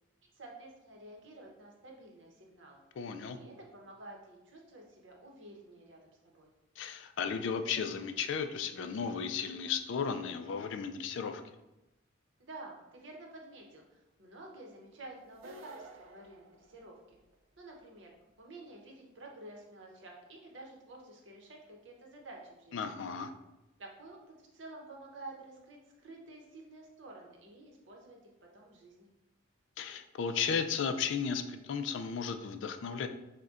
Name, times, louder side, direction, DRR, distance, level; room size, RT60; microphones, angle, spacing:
voice 1, 0.3-2.8 3.3-6.5 12.4-17.2 17.6-18.1 18.4-22.8 23.8-29.1, right 2 dB, 65° right, 0 dB, 0.8 m, -51 dB
voice 2, 3.0-3.4 6.8-11.4 22.7-23.3 29.8-33.1, left 6 dB, 65° left, 8 dB, 0.3 m, -34 dB
sound 1, 15.3-17.3, right 1 dB, 80° right, 0.4 m, -53 dB
6.3 x 2.2 x 2.4 m, 0.98 s
head